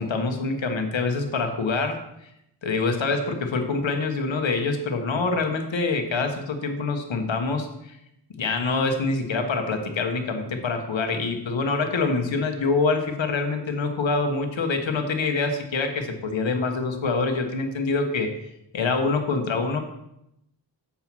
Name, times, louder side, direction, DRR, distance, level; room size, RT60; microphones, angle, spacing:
voice 1, 0.0-2.3 2.6-8.0 8.4-18.3 18.7-19.8, left 3 dB, 85° left, 6 dB, 1.1 m, -25 dB
7.2 x 4.7 x 6.0 m, 0.81 s
cardioid pair, 45°, 44 cm